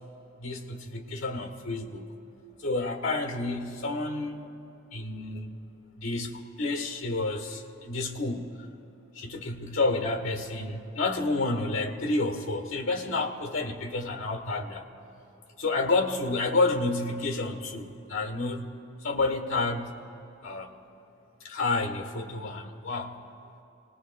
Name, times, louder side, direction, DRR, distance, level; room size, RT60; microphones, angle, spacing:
voice 1, 0.4-2.1 2.6-4.4 4.9-5.6 6.0-8.7 9.1-14.8 15.6-18.7 19.0-20.0 20.4-20.8 21.4-23.1, left 3 dB, 80° left, 3 dB, 1.4 m, -30 dB
26.5 x 19.0 x 2.2 m, 2.7 s
head